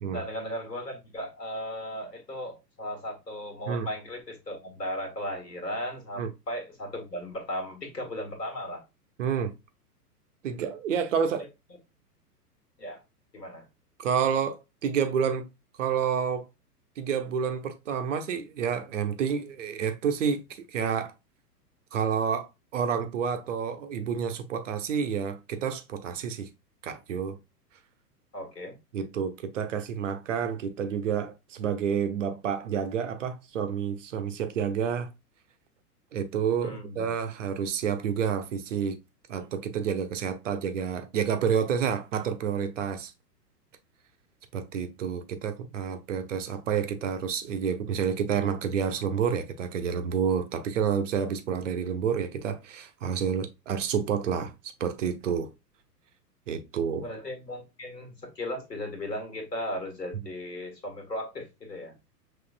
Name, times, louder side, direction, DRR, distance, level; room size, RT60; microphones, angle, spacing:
voice 1, 0.1-8.8 11.4-11.5 12.8-13.0 13.3-13.7 28.3-28.8 36.6-37.1 57.0-61.9, equal, 80° left, 1.8 m, -36 dB
voice 2, 9.2-9.6 10.4-11.5 14.0-15.5 15.8-16.5 17.0-21.1 21.9-22.5 22.7-26.5 26.8-27.4 28.9-35.1 36.1-39.0 39.3-43.1 44.5-55.5 56.5-57.0, right 7 dB, 50° right, 0.8 m, -29 dB
5.6 x 3.2 x 2.4 m
figure-of-eight pair, 105°, 49 cm